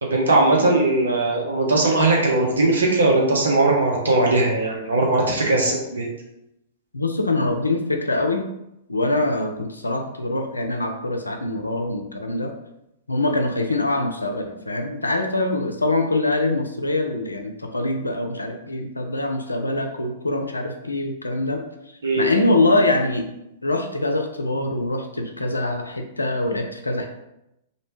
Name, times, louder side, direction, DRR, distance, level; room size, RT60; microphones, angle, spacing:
voice 1, 0.0-6.1 22.0-22.4, right 2 dB, 75° right, -1 dB, 0.6 m, -19 dB
voice 2, 6.9-8.5 8.9-12.5 13.1-21.6 22.2-23.2 23.6-27.1, left 2 dB, 90° left, 4 dB, 0.3 m, -24 dB
2.6 x 2.1 x 3.0 m, 0.85 s
figure-of-eight pair, 105°, 0 cm